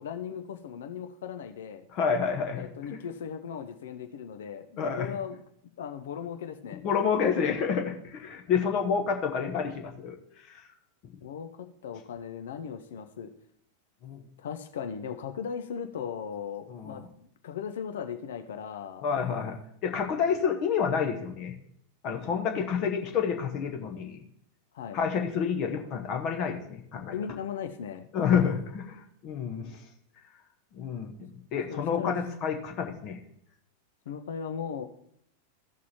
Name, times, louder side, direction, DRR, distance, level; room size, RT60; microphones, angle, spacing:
voice 1, 0.0-1.8 2.5-5.4 5.8-6.8 11.2-13.3 14.4-17.0 17.4-19.1 22.5-22.7 24.7-25.0 27.1-28.1 31.7-32.1 34.1-34.9, left 7 dB, 60° left, 8 dB, 0.6 m, -37 dB
voice 2, 1.9-3.0 4.8-5.1 6.7-10.2 10.5-10.6 14.0-14.2 16.7-17.0 19.0-19.6 19.8-21.5 22.0-24.2 24.9-27.1 28.1-29.0 29.2-29.8 30.8-33.2, left 6 dB, 40° left, 3 dB, 1.0 m, -29 dB
15.0 x 6.1 x 3.0 m, 0.71 s
figure-of-eight pair, 90°, 0 cm